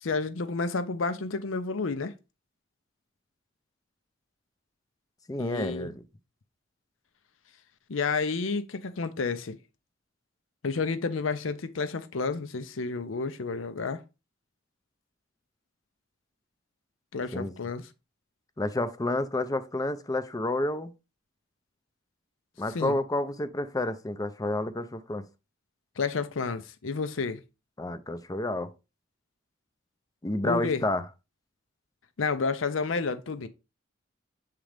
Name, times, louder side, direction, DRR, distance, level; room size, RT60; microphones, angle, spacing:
voice 1, 0.0-2.1 5.4-5.9 7.9-9.6 10.6-14.0 17.1-17.8 22.7-23.0 26.0-27.4 30.4-30.8 32.2-33.5, left 4 dB, 75° left, 0.6 m, -30 dB
voice 2, 5.3-6.0 17.3-17.5 18.6-20.9 22.6-25.2 27.8-28.7 30.2-31.0, left 2 dB, 20° left, 0.5 m, -30 dB
7.3 x 3.8 x 3.4 m
head